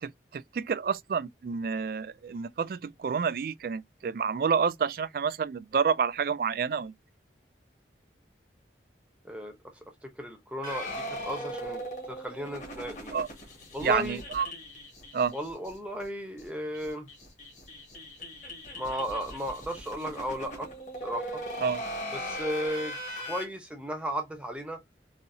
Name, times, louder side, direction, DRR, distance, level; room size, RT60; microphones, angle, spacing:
voice 1, 0.0-6.9 13.1-13.3 13.8-14.5 15.1-15.3 21.6-21.8, right 6 dB, 55° right, 0.3 m, -29 dB
voice 2, 9.2-9.6 10.0-13.2 13.7-14.2 15.3-17.1 18.7-20.7 21.0-21.4 22.1-24.8, equal, 5° right, 0.7 m, -35 dB
sound 1, 10.6-15.7 16.0-16.1 16.4-16.5 16.7-23.4, equal, 45° left, 1.6 m, -39 dB
4.1 x 2.8 x 2.6 m
head